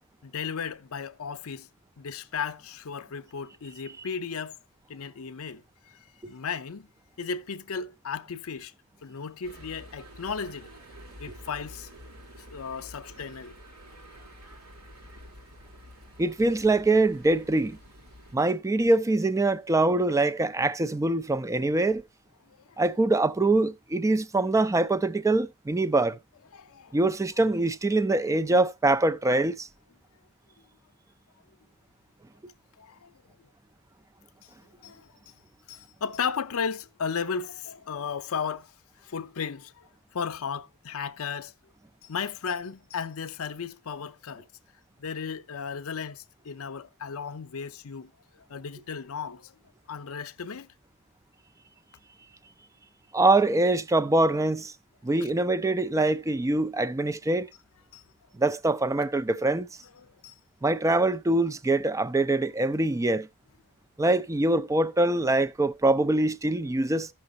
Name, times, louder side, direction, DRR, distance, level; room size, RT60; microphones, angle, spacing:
voice 1, 0.2-1.7 2.0-4.6 4.9-6.9 7.2-8.7 9.0-10.7 11.2-11.9 12.4-13.5 22.4-22.8 26.5-27.0 30.6-30.7 32.8-33.4 34.4-34.5 34.8-35.1 35.7-41.5 42.0-44.5 45.0-48.1 48.5-49.6 49.9-50.7 57.9-58.0 60.0-60.3, left 6 dB, 70° left, 0.6 m, -35 dB
sound 1, 9.4-18.4, equal, 80° right, 4.6 m, -49 dB
voice 2, 16.2-17.8 18.3-22.0 22.8-26.2 26.9-29.7 53.1-54.7 55.0-57.5 58.4-59.7 60.6-63.3 64.0-67.1, right 2 dB, 15° right, 0.4 m, -24 dB
15.5 x 5.8 x 2.6 m
head